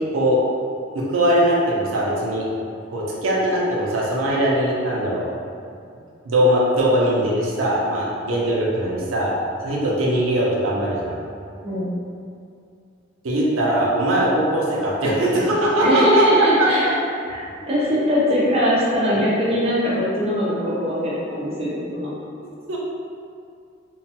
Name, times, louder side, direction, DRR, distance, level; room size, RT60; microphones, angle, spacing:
voice 1, 0.9-2.5 2.9-5.2 6.2-9.3 9.6-11.1 13.2-16.9 22.7-22.8, right 1 dB, 85° right, -5 dB, 0.5 m, -20 dB
voice 2, 15.8-16.9 17.3-22.1, equal, 30° right, -8 dB, 0.7 m, -21 dB
3.1 x 2.2 x 2.8 m, 2.4 s
head